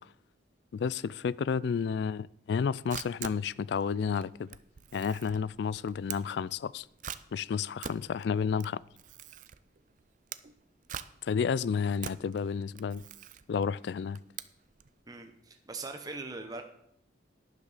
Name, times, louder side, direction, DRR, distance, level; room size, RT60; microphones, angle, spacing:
voice 1, 0.7-4.5 4.9-6.9 7.3-8.8 11.2-13.0 13.5-14.2, left 6 dB, 65° left, 0.3 m, -31 dB
Camera, 2.5-14.9, right 8 dB, 40° right, 0.4 m, -45 dB
voice 2, 15.1-16.6, right 3 dB, 20° right, 0.8 m, -41 dB
11.5 x 10.5 x 4.1 m
head